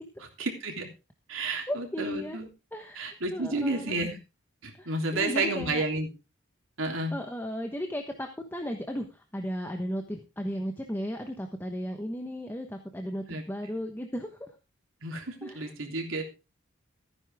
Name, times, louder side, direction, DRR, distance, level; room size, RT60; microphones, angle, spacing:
voice 1, 0.4-0.9 1.3-2.5 2.9-4.2 4.6-6.1 6.8-7.1 13.3-13.4 15.0-16.2, right 2 dB, 80° right, 2 dB, 3.3 m, -31 dB
voice 2, 1.5-2.4 2.7-3.9 4.8-5.8 7.1-14.5 15.4-15.7, equal, 10° left, 4 dB, 1.1 m, -35 dB
15.0 x 9.7 x 3.6 m, 0.29 s
head